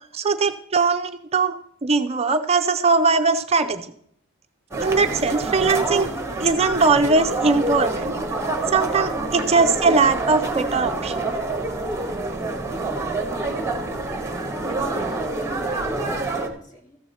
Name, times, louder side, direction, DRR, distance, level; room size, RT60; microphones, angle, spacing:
voice 1, 0.1-1.6 1.8-3.9 4.8-6.1 6.4-8.2 8.7-11.2, right 4 dB, 30° right, 8 dB, 0.4 m, -20 dB
sound 1, 4.7-16.5, right 2 dB, 15° right, 1.1 m, -27 dB
voice 2, 14.7-17.0, equal, 40° left, 1 dB, 2.1 m, -40 dB
14.0 x 7.0 x 4.1 m, 0.67 s
head